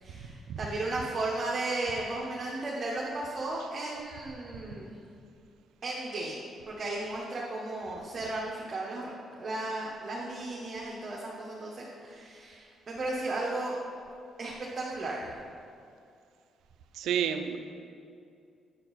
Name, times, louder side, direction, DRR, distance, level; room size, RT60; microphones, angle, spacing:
voice 1, 0.0-5.0 5.8-6.4 6.7-9.1 9.4-13.7 14.4-15.3, right 2 dB, 45° right, -4 dB, 0.9 m, -35 dB
voice 2, 16.9-17.6, right 8 dB, 80° right, 8 dB, 0.4 m, -30 dB
7.8 x 4.5 x 4.0 m, 2.5 s
cardioid pair, 75°, 0 cm